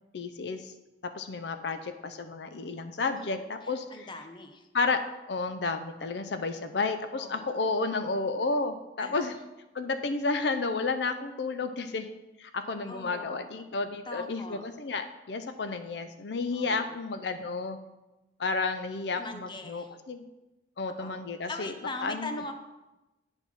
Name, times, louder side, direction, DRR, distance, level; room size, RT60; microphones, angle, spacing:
voice 1, 0.1-0.7 1.0-4.1 4.7-5.0 5.3-9.4 9.7-12.1 12.4-17.8 18.4-20.2 20.8-21.7 22.0-22.3, left 3 dB, 70° left, 9 dB, 0.6 m, -31 dB
voice 2, 3.2-4.7 7.2-7.5 8.0-8.1 9.0-9.3 12.9-13.8 14.1-14.7 16.5-16.9 19.2-19.9 21.0-22.5, left 2 dB, 25° left, 7 dB, 0.8 m, -41 dB
9.0 x 4.5 x 7.2 m, 1.0 s
head